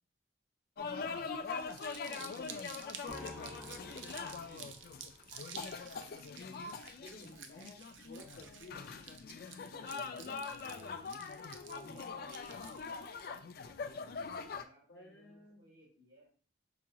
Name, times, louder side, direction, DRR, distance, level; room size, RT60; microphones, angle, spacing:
sound 1, 0.8-14.6, left 5 dB, 55° left, 0.3 m, -43 dB
voice 1, 0.9-2.1 2.8-4.7 7.5-7.7 9.8-10.1 13.1-16.3, equal, 65° right, -9 dB, 1.5 m, -64 dB
Crumpling crinkling, 1.5-13.3, right 7 dB, 90° right, 0.5 m, -51 dB
sound 2, 3.1-5.5, equal, 20° right, 0.9 m, -52 dB
voice 2, 7.0-7.8 8.0-9.0 9.7-11.0 11.6-12.2 14.9-15.6, left 2 dB, 70° left, 0 dB, 0.8 m, -55 dB
4.8 x 2.8 x 2.3 m, 0.40 s
head